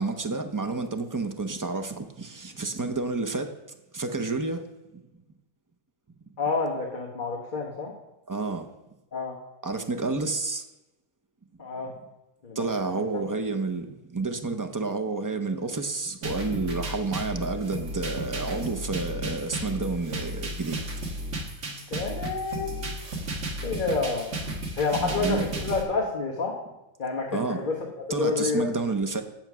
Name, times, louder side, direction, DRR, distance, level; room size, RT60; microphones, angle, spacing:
voice 1, 0.0-3.5 3.9-4.6 8.3-8.7 9.6-10.6 12.6-13.9 14.1-20.8 25.0-25.5 27.3-27.6 28.1-29.2, right 3 dB, 25° right, 0.4 m, -30 dB
voice 2, 6.4-7.9 9.1-9.3 11.6-11.9 12.4-12.6 12.9-13.0 21.7-22.9 23.6-24.4 24.8-26.5 27.0-27.7 28.1-28.7, left 4 dB, 40° left, 1.3 m, -29 dB
sound 1, 16.2-25.8, right 1 dB, 60° right, 1.9 m, -34 dB
8.9 x 6.7 x 6.0 m
omnidirectional pair, 1.4 m